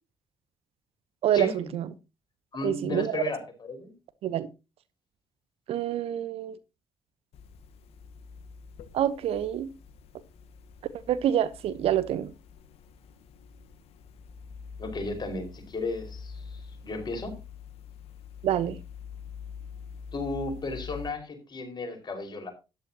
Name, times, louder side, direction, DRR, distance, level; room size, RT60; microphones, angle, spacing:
voice 1, 1.2-1.9 2.6-3.2 4.2-4.5 5.7-6.6 8.9-9.7 11.1-12.3 18.4-18.8, right 10 dB, 65° right, 0.9 m, -27 dB
voice 2, 2.5-3.9 14.8-17.3 20.1-22.5, left 3 dB, 40° left, 5.1 m, -34 dB
sound 1, 7.3-21.1, left 6 dB, 65° left, 1.3 m, -45 dB
13.0 x 11.0 x 2.9 m
hypercardioid pair, 45°, 11 cm